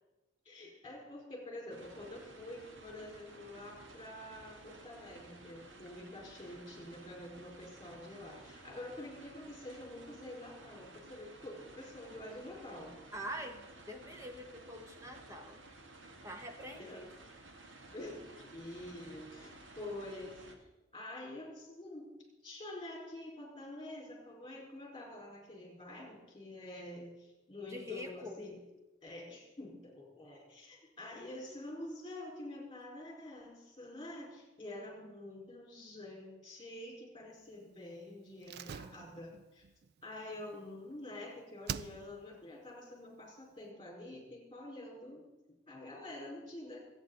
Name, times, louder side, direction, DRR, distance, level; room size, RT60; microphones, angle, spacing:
voice 1, 0.4-13.0 16.8-17.0 17.9-22.1 22.4-28.6 29.0-39.6 40.0-46.8, left 1 dB, 20° left, -1 dB, 4.5 m, -47 dB
sound 1, 1.7-20.5, right 2 dB, 80° right, 1.6 m, -55 dB
voice 2, 13.1-15.6 16.2-17.1 27.7-28.4, equal, 15° right, 4 dB, 1.2 m, -45 dB
Slam, 38.4-41.2 41.6-42.4 42.7-42.8, right 7 dB, 55° right, 0.4 m, -45 dB
24.0 x 9.0 x 4.0 m, 1.0 s
head